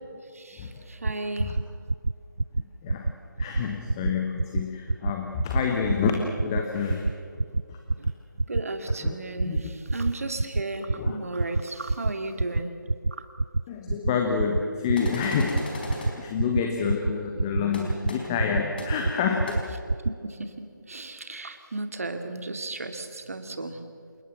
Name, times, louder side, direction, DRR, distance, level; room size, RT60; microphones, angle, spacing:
voice 1, 0.3-1.6 3.4-3.5 7.5-7.6 8.0-8.1 8.5-12.7 13.1-13.3 20.0-20.5 20.8-23.8, right 2 dB, 45° right, 7 dB, 2.4 m, -34 dB
sound 1, 1.0-1.1 1.4-1.6 1.9-2.1 2.4-2.6 2.9-3.1 3.4-3.6 3.9-4.1 4.4-4.6 4.9-5.1 5.4-5.6 5.9-6.1 6.4-6.6 6.9-7.1 7.4-7.6 7.9-8.1 8.4-8.6 8.9-9.1 9.4-9.6 9.9-10.1 10.4-10.6 10.9-11.1 11.4-11.6 11.9-12.1 12.4-12.6 12.9-13.1 13.4-13.6 13.9-14.1 14.4-14.6 14.9-15.1 15.4-15.6 15.9-16.1 16.4-16.6 16.9-17.1 17.4-17.6 17.9-18.1 18.4-18.6 18.9-19.1 19.4-19.6 19.9-20.1, right 3 dB, 85° right, 0.5 m, -25 dB
voice 2, 2.8-3.1 3.4-7.1 7.7-7.8 9.0-9.2 9.5-9.6 10.9-11.2 13.7-15.8 16.1-19.6, left 6 dB, 10° left, 3 dB, 1.1 m, -28 dB
sound 2, 15.0-16.1 17.7-17.8 18.1-18.2 18.8-18.9 19.5-19.6, left 2 dB, 25° left, 4.6 m, -36 dB
28.5 x 18.5 x 7.5 m, 2.4 s
figure-of-eight pair, 160°, 11 cm